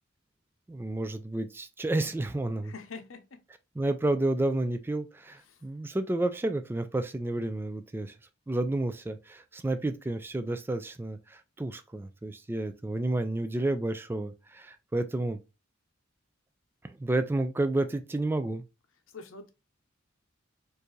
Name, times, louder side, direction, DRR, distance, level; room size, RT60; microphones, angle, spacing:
voice 1, 0.7-2.7 3.8-8.1 8.5-15.4 16.8-18.6, right 2 dB, 10° right, 0.3 m, -30 dB
voice 2, 2.6-3.2 5.5-5.6 19.1-19.5, left 4 dB, 80° left, 0.7 m, -44 dB
4.5 x 2.6 x 3.1 m
head